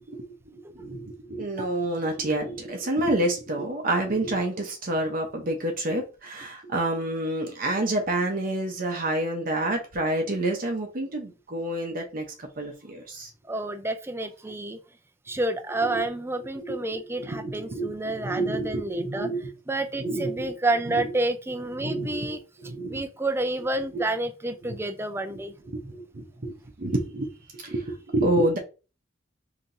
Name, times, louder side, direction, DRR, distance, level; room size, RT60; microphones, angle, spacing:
voice 1, 0.5-13.3 15.8-16.0 16.6-16.7 17.2-19.5 20.0-20.5 20.9-21.1 21.8-23.0 24.6-24.8 25.7-27.3 27.5-28.6, right 1 dB, 45° right, 0.8 m, -28 dB
voice 2, 13.5-14.8 15.3-19.3 19.7-22.4 22.9-25.5, right 2 dB, 15° right, 0.4 m, -29 dB
5.8 x 2.9 x 2.6 m
head